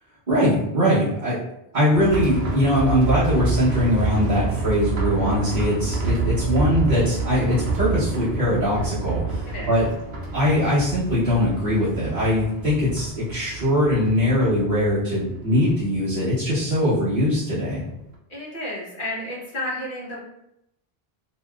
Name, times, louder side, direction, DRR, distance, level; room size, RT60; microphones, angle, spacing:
voice 1, 0.3-1.4 1.7-9.9 10.3-17.8, left 1 dB, 50° right, -13 dB, 1.1 m, -21 dB
sound 1, 1.9-17.4 17.7-17.8 18.1-18.2, right 3 dB, 75° right, 0.8 m, -28 dB
voice 2, 9.5-9.8 18.3-20.2, left 1 dB, 55° left, -5 dB, 1.2 m, -31 dB
2.9 x 2.7 x 2.3 m, 0.81 s
omnidirectional pair, 1.0 m